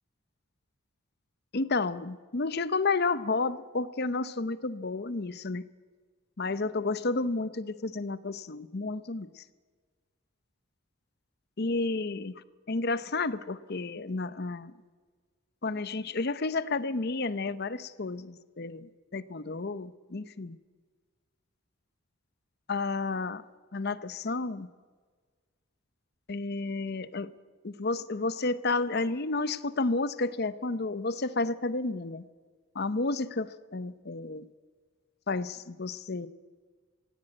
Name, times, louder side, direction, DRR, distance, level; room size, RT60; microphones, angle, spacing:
voice 1, 1.5-5.6 6.4-9.4 11.6-12.3 12.7-14.7 15.6-20.6 22.7-23.4 23.7-24.7 26.3-27.3 27.6-32.2 32.7-34.5 35.3-36.3, left 3 dB, 50° left, 15 dB, 0.8 m, -31 dB
17.5 x 16.5 x 8.8 m, 1.5 s
head